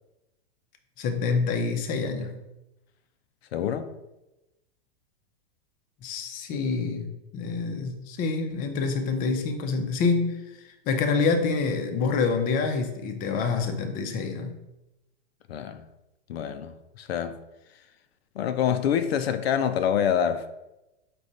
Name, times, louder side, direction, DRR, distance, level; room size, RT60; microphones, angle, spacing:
voice 1, 1.0-2.4 6.0-14.6, left 4 dB, 30° left, 0.5 m, -27 dB
voice 2, 3.5-3.9 15.5-15.9 16.3-17.4 18.4-20.6, left 8 dB, 85° left, 0.5 m, -26 dB
5.0 x 2.3 x 3.9 m
hypercardioid pair, 125°, 30 cm